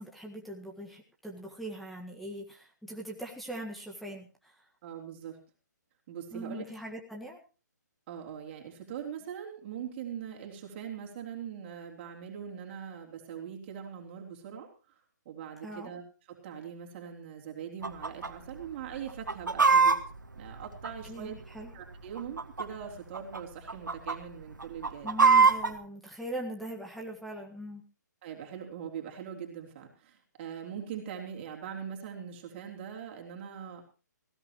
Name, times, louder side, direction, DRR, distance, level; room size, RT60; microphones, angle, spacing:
voice 1, 0.0-4.6 6.3-7.4 15.6-15.9 21.1-21.7 25.0-27.8, right 1 dB, ahead, 0 dB, 1.7 m, -41 dB
voice 2, 4.8-5.4 6.1-6.7 8.1-15.0 15.3-16.0 16.3-20.0 20.4-21.3 21.7-25.1 28.2-33.8, right 8 dB, 35° right, 1 dB, 3.6 m, -42 dB
Chicken rooster, 17.8-18.3 18.6-18.7 19.1-21.4 22.1-22.8 23.1-23.4 23.7-24.2 24.6-25.7, right 4 dB, 80° right, 1.9 m, -23 dB
19.0 x 16.5 x 3.1 m, 0.33 s
figure-of-eight pair, 135°, 10 cm